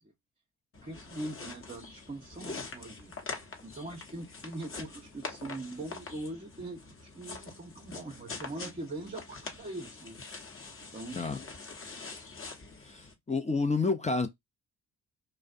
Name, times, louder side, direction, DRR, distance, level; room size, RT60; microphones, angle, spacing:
sound 1, 0.7-13.1, left 4 dB, 35° left, 0.9 m, -44 dB
voice 1, 0.8-3.2 3.6-10.2 10.9-11.2, right 2 dB, 20° right, 0.7 m, -42 dB
voice 2, 12.8-14.3, left 4 dB, 20° left, 0.5 m, -29 dB
2.4 x 2.1 x 2.4 m
supercardioid pair, 55°, 37 cm